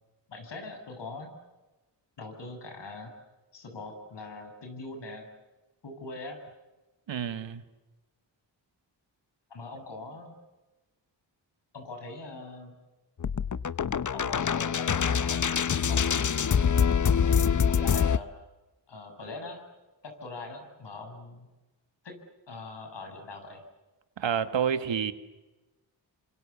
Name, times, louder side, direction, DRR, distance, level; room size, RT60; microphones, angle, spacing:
voice 1, 0.3-1.4 2.2-3.1 3.5-5.3 5.8-6.4 9.5-10.4 11.7-12.7 14.1-16.8 17.2-18.3 18.9-19.6 20.0-21.5 22.0-22.2 22.5-23.6, left 3 dB, 70° left, 5 dB, 7.9 m, -42 dB
voice 2, 7.1-7.6 24.2-25.1, right 8 dB, 80° right, 10 dB, 1.9 m, -29 dB
sound 1, 13.2-18.2, left 7 dB, 45° left, 0.8 m, -25 dB
29.0 x 26.0 x 7.2 m, 1.1 s
cardioid pair, 70°, 44 cm